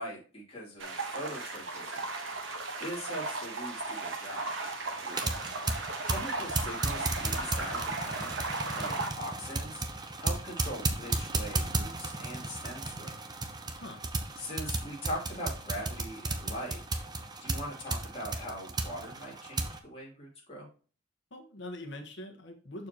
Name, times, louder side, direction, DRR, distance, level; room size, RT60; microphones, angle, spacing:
voice 1, 0.0-2.0 2.8-4.5 6.1-8.3 8.7-9.8 10.2-13.2 14.4-16.8 17.4-20.7, equal, 30° left, -3 dB, 3.0 m, -41 dB
sound 1, 0.8-9.1, right 3 dB, 80° right, 1.2 m, -36 dB
sound 2, 5.0-19.8, right 2 dB, 20° right, 0.8 m, -35 dB
voice 2, 5.2-5.5 13.8-14.1 21.3-22.9, left 1 dB, 70° left, 3 dB, 1.4 m, -43 dB
7.0 x 6.6 x 3.0 m, 0.38 s
head